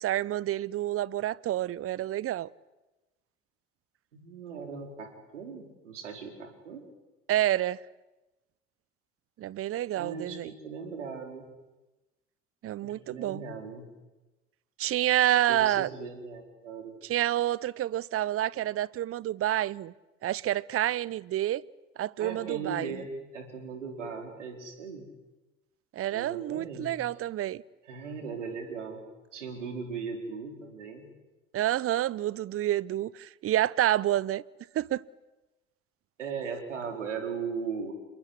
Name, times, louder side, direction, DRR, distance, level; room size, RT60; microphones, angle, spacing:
voice 1, 0.0-2.5 7.3-7.8 9.4-10.5 12.6-13.4 14.8-15.9 17.0-19.9 20.2-21.6 22.0-23.0 25.9-27.6 31.5-34.4 34.7-35.0, right 13 dB, 40° right, 0.8 m, -28 dB
voice 2, 4.1-6.8 9.9-11.5 12.8-13.9 15.5-16.9 22.2-25.1 26.1-27.1 27.8-29.0 29.3-31.1 36.2-37.9, right 5 dB, 80° right, 4.6 m, -38 dB
27.5 x 21.5 x 9.8 m
figure-of-eight pair, 60°, 36 cm